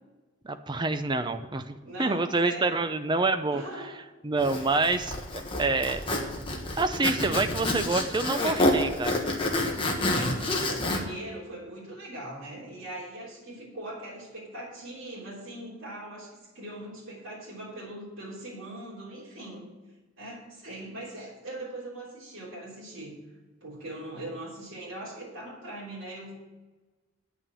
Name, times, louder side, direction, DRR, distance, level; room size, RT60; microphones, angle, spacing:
voice 1, 0.4-3.6 4.2-6.0 6.8-9.2, right 3 dB, 20° right, 9 dB, 0.5 m, -27 dB
voice 2, 1.8-2.8 3.5-4.0 4.5-5.0 7.2-7.4 8.4-8.7 9.8-19.7 20.2-23.2 23.6-26.3, right 1 dB, 75° right, -6 dB, 3.3 m, -41 dB
Zipper (clothing), 4.4-11.0, left 1 dB, 25° left, 1.3 m, -28 dB
9.0 x 5.9 x 8.3 m, 1.2 s
head